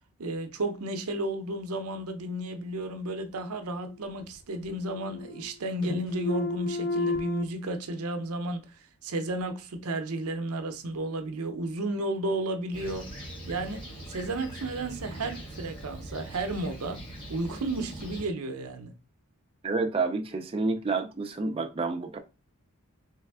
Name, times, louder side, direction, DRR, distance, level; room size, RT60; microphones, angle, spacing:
voice 1, 0.2-13.1 13.5-17.0 17.3-18.9, right 1 dB, 75° right, 0.7 m, -33 dB
sound 1, 3.4-4.3 4.6-5.6 5.8-7.4, left 2 dB, 80° left, 1.8 m, -33 dB
Fixed-wing aircraft airplane, 12.7-18.3, right 1 dB, 20° left, 1.8 m, -42 dB
voice 2, 19.6-22.2, right 3 dB, 25° right, 0.4 m, -29 dB
3.4 x 3.3 x 3.5 m
head